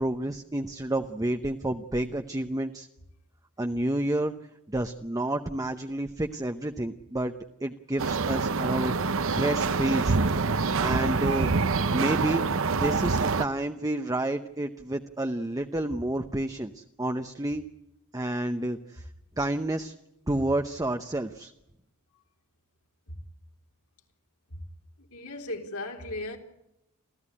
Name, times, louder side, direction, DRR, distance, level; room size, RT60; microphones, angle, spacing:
voice 1, 0.0-2.9 3.6-4.3 4.7-7.3 7.6-9.0 9.3-10.2 10.8-11.5 11.9-17.6 18.1-19.1 19.4-19.9 20.3-21.5, right 1 dB, 15° right, 7 dB, 0.8 m, -30 dB
sound 1, 8.0-13.4, right 4 dB, 65° right, 0.9 m, -26 dB
voice 2, 25.0-26.4, left 2 dB, 75° left, 2 dB, 3.8 m, -37 dB
29.5 x 14.0 x 9.9 m, 0.88 s
head